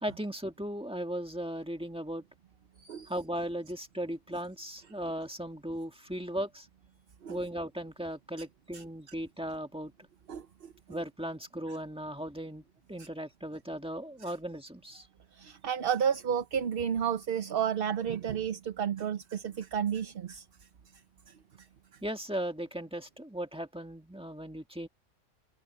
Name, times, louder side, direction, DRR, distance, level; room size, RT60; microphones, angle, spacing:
voice 1, 0.0-2.2 3.1-6.7 7.3-9.9 10.9-12.6 12.9-15.1 22.0-24.9, right 1 dB, 5° right, 1.7 m, -37 dB
voice 2, 2.8-3.1 7.2-7.4 8.7-8.8 10.3-11.0 15.3-20.4, right 8 dB, 55° right, 0.9 m, -32 dB
omnidirectional pair, 1.2 m